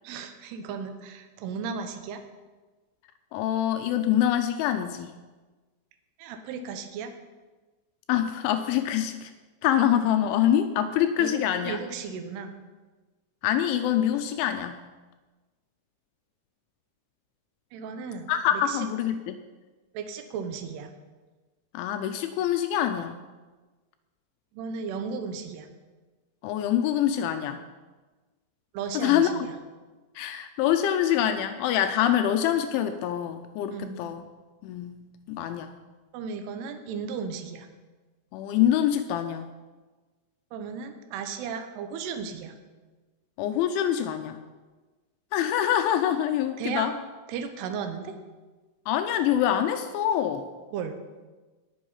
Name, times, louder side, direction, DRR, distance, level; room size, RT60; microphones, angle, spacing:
voice 1, 0.0-2.2 6.2-7.1 11.2-12.6 17.7-18.9 19.9-20.9 24.5-25.7 28.7-29.5 33.7-34.0 36.1-37.7 40.5-42.5 46.6-46.9 47.3-48.2 50.7-51.0, right 6 dB, 75° right, 7 dB, 2.5 m, -35 dB
voice 2, 3.3-5.1 8.1-9.3 9.6-11.8 13.4-14.8 18.3-19.4 21.7-23.2 26.4-27.6 28.9-29.5 30.2-34.3 34.6-35.0 35.3-35.7 38.3-39.5 43.4-44.4 45.3-46.9 48.9-50.5, left 10 dB, 80° left, 8 dB, 2.8 m, -25 dB
19.0 x 6.4 x 5.7 m, 1.3 s
omnidirectional pair, 5.9 m